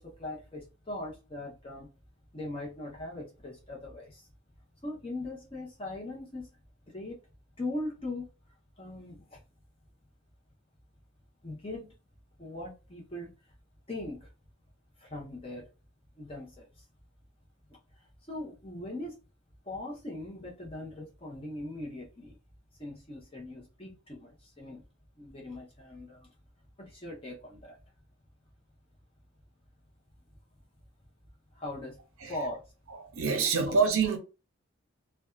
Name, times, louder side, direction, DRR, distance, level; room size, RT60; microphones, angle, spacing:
voice 1, 0.0-1.9 2.3-4.3 4.8-6.6 6.9-7.2 7.6-8.3 8.8-9.4 11.4-11.9 12.4-13.3 13.9-14.3 15.0-15.7 16.2-16.8 17.7-17.8 18.3-19.2 19.6-22.4 22.8-24.8 25.2-26.3 26.8-27.8 31.5-32.0 32.3-32.6 33.7-33.8, left 2 dB, 25° left, 0.8 m, -40 dB
voice 2, 32.9-34.2, right 5 dB, 75° right, 0.6 m, -26 dB
2.5 x 2.2 x 2.3 m
head